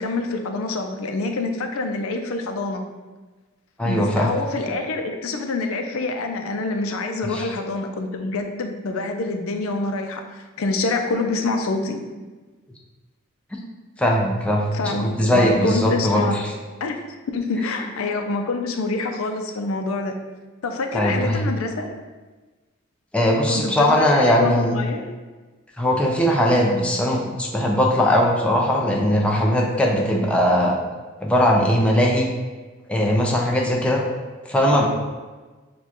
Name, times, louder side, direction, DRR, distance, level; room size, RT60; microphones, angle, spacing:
voice 1, 0.0-2.8 3.9-12.0 14.7-16.4 16.8-17.0 17.3-20.2 20.6-22.0 23.5-25.1, left 3 dB, 85° left, 5 dB, 0.5 m, -26 dB
voice 2, 3.8-4.3 7.3-7.5 14.0-16.4 20.9-21.4 23.1-24.8 25.8-30.7 31.2-32.3 32.9-34.0 34.5-34.9, equal, 5° left, -2 dB, 0.5 m, -19 dB
6.6 x 2.3 x 2.9 m, 1.3 s
head